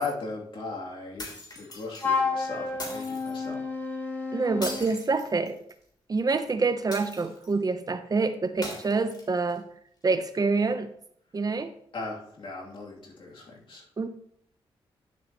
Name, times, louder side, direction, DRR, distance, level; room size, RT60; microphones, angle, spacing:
voice 1, 0.0-3.6 11.9-13.9, left 3 dB, 60° left, -3 dB, 2.8 m, -37 dB
sound 1, 1.2-2.0 2.8-3.4 4.6-5.8 6.9-7.6 8.6-9.6, left 2 dB, 40° left, 3.3 m, -40 dB
Wind instrument woodwind instrument, 2.0-4.9, left 4 dB, 20° left, 2.3 m, -30 dB
voice 2, 4.3-5.6 6.1-9.6 10.0-10.9 11.3-11.7 14.0-14.1, right 4 dB, 40° right, 10 dB, 0.7 m, -26 dB
10.5 x 7.4 x 3.0 m, 0.68 s
cardioid pair, 60°, 10 cm